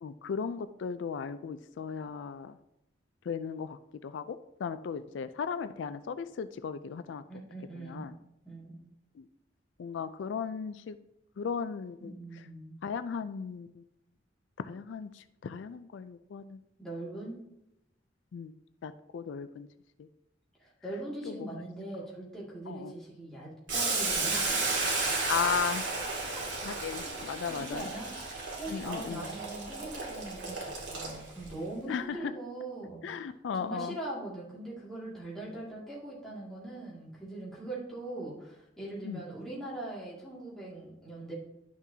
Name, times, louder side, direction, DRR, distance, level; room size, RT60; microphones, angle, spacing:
voice 1, 0.0-2.6 3.3-7.2 7.7-8.1 9.2-9.3 9.8-11.0 11.4-12.2 12.8-13.8 14.6-16.6 18.3-18.5 18.8-19.7 20.0-20.1 21.3-21.4 22.7-22.9 25.3-25.9 26.6-27.9 28.7-29.2 31.9-32.3 33.0-33.9 39.0-39.2, left 6 dB, 80° left, 12 dB, 0.4 m, -36 dB
voice 2, 7.3-8.1 8.4-8.8 12.0-12.8 16.8-17.4 20.6-25.2 26.0-28.1 28.6-41.3, right 2 dB, ahead, -7 dB, 2.2 m, -41 dB
Boiling, 23.7-31.5, right 3 dB, 80° right, 2.0 m, -33 dB
10.5 x 6.0 x 2.8 m, 0.85 s
head